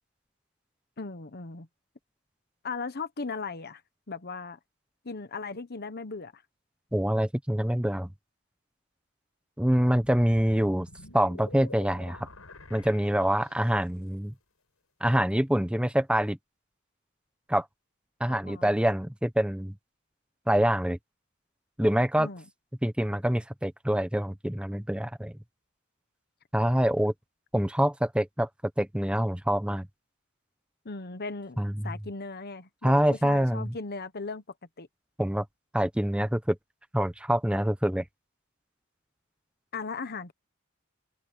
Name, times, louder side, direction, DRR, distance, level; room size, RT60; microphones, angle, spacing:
voice 1, 1.0-1.7 2.6-3.8 4.1-4.6 5.0-6.4 18.3-18.8 22.2-22.4 30.8-31.6 31.8-34.4 34.8-34.9 39.7-40.3, left 4 dB, 50° left, 1.1 m, -37 dB
voice 2, 6.9-8.1 9.6-10.9 11.1-12.3 12.7-14.3 15.0-16.4 17.5-17.7 18.2-19.7 20.5-21.0 21.8-22.3 22.8-25.3 26.5-27.1 27.5-28.5 28.8-29.9 31.6-31.9 32.8-33.7 35.2-35.4 35.7-36.6 36.9-38.0, equal, 5° right, 1.0 m, -25 dB
sound 1, 9.9-13.9, left 2 dB, 80° left, 7.7 m, -48 dB
open air
head